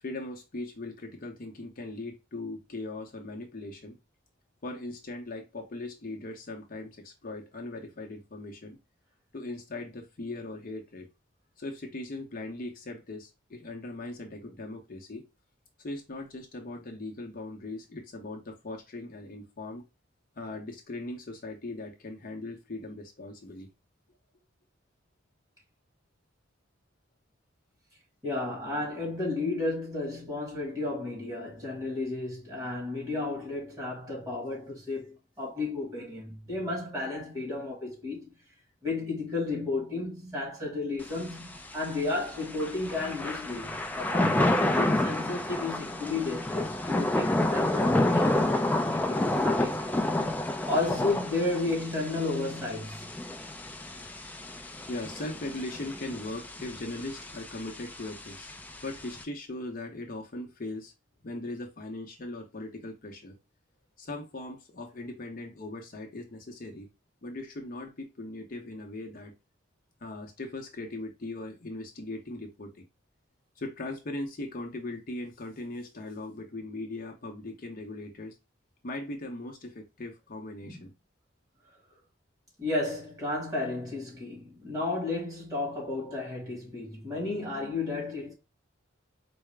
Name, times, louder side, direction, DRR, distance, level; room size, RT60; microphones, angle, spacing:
voice 1, 0.0-4.0 4.6-8.8 9.3-11.1 11.6-15.3 15.8-19.8 20.4-23.7 54.9-58.5 58.8-60.9 61.2-63.4 64.0-66.9 67.2-69.3 70.0-72.8 73.6-78.3 78.8-80.9, left 2 dB, 45° left, 0.7 m, -39 dB
voice 2, 28.2-38.3 38.8-49.9 50.6-53.1 82.6-88.3, left 2 dB, 20° right, 1.6 m, -33 dB
Thunder / Rain, 41.0-59.2, left 1 dB, 10° left, 0.3 m, -30 dB
4.7 x 2.1 x 3.3 m
head